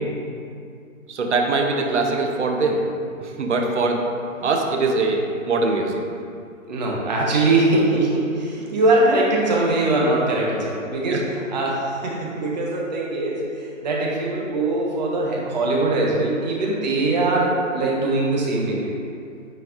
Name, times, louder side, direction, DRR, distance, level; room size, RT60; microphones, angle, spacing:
voice 1, 1.1-4.0 4.4-6.0 11.1-11.2, right 3 dB, 60° right, 2 dB, 0.9 m, -22 dB
voice 2, 6.7-18.9, right 2 dB, 35° right, -3 dB, 1.1 m, -22 dB
9.5 x 4.5 x 2.6 m, 2.4 s
figure-of-eight pair, 150°, 40 cm